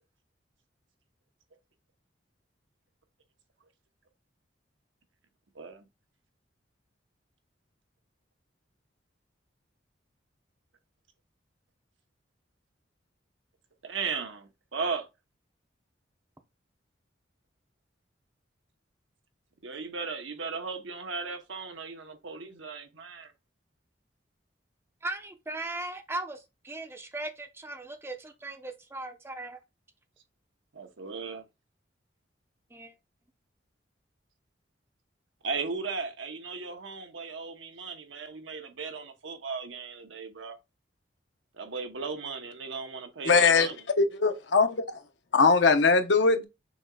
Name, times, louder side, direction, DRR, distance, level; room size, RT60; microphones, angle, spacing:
voice 1, 13.8-15.1 19.6-23.3 30.8-31.4 35.4-40.6 41.6-43.7, right 4 dB, 85° right, 0.9 m, -36 dB
voice 2, 25.0-29.6 32.7-32.9, right 2 dB, 15° right, 0.7 m, -38 dB
voice 3, 43.2-45.0 45.3-46.4, left 4 dB, 70° left, 0.7 m, -22 dB
6.1 x 3.8 x 2.3 m
head